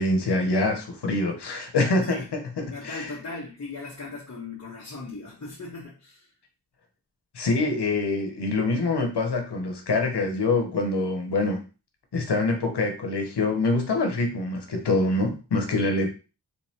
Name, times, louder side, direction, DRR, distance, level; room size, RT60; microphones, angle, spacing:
voice 1, 0.0-3.1 7.3-11.6 12.1-16.1, left 2 dB, 80° left, 3 dB, 1.0 m, -25 dB
voice 2, 2.0-2.3 2.7-6.3 14.1-14.3, left 3 dB, 40° left, -5 dB, 1.1 m, -38 dB
4.0 x 3.1 x 2.8 m, 0.32 s
wide cardioid pair, 60°, 40 cm